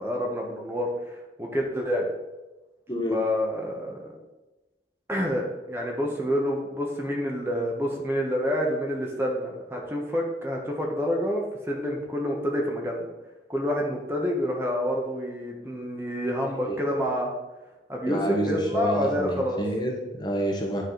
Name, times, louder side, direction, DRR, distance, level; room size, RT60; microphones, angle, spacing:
voice 1, 0.0-2.1 3.1-4.2 5.1-13.1 13.5-17.3 17.9-19.6, equal, 15° right, 0 dB, 1.1 m, -28 dB
voice 2, 2.9-3.2 16.6-16.8 18.1-20.8, right 1 dB, 25° left, 1 dB, 1.1 m, -28 dB
9.6 x 4.9 x 3.9 m, 1.1 s
head